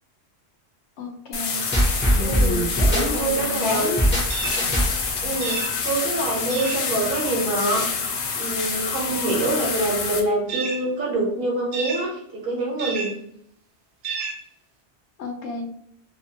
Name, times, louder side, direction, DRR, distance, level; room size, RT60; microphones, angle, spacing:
voice 1, 1.0-1.7 2.1-4.0 15.2-15.7, left 2 dB, 85° left, 2 dB, 0.9 m, -30 dB
sound 1, 1.3-10.2, left 5 dB, 60° left, 0.6 m, -27 dB
sound 2, 1.7-5.2, equal, 15° left, 0.5 m, -22 dB
voice 2, 2.2-3.9 5.2-8.0 8.4-13.1, right 2 dB, 55° right, -2 dB, 1.0 m, -26 dB
sound 3, 4.3-4.7 5.4-5.7 6.5-6.8 10.5-10.8 11.7-12.1 12.8-13.1 14.0-14.4, right 5 dB, 85° right, 0.9 m, -30 dB
2.8 x 2.1 x 2.7 m, 0.70 s
omnidirectional pair, 1.1 m